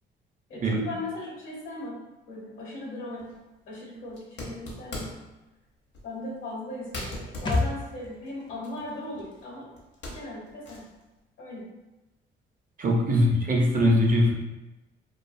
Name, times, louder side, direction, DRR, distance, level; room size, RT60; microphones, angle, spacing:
voice 1, 0.5-3.3 3.7-5.2 6.0-9.7 10.1-10.9 11.4-11.7, left 2 dB, 85° left, -4 dB, 1.0 m, -38 dB
sound 1, 3.2-3.4 4.1-5.3 5.9-6.1 6.5-6.6 6.9-9.4 9.8-11.0, left 1 dB, 65° left, 0.8 m, -40 dB
sound 2, 7.5-11.0 11.2-11.3, left 2 dB, 25° left, 0.4 m, -34 dB
voice 2, 12.8-14.3, equal, 45° right, 0 dB, 0.5 m, -21 dB
2.3 x 2.3 x 2.5 m, 1.0 s
cardioid pair, 90°, 20 cm